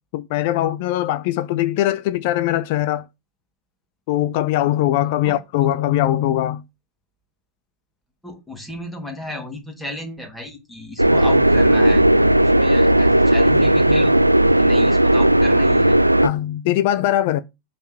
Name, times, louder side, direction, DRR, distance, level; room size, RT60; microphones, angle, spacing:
voice 1, 0.1-3.1 4.1-6.6 16.2-17.4, left 13 dB, 50° left, 0.5 m, -21 dB
voice 2, 5.2-5.7 8.2-14.2 14.6-16.0, left 1 dB, 5° left, 2.6 m, -34 dB
sound 1, 11.0-16.3, right 1 dB, 85° right, 0.4 m, -15 dB
8.1 x 4.3 x 6.5 m
figure-of-eight pair, 90°, 0 cm